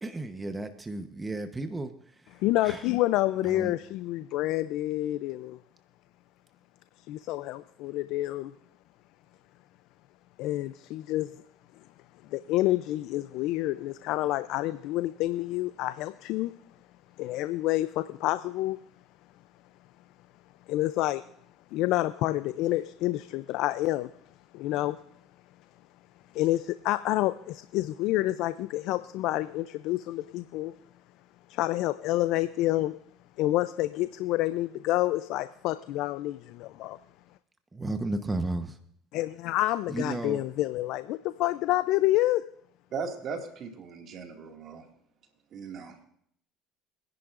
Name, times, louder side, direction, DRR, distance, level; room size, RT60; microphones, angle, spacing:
voice 1, 0.0-1.9 2.6-2.8 3.5-3.7 37.7-38.7 39.9-40.4, right 2 dB, 15° right, 1.0 m, -33 dB
voice 2, 2.3-5.6 7.1-8.5 10.4-11.3 12.3-16.5 17.2-18.8 20.7-21.2 21.7-24.1 24.5-25.0 26.3-30.7 31.5-33.0 33.4-37.0 39.1-42.5, left 16 dB, 70° left, 0.4 m, -28 dB
voice 3, 42.9-44.9 45.5-46.0, right 5 dB, 55° right, 2.1 m, -38 dB
24.5 x 10.5 x 2.5 m
supercardioid pair, 90°, 0 cm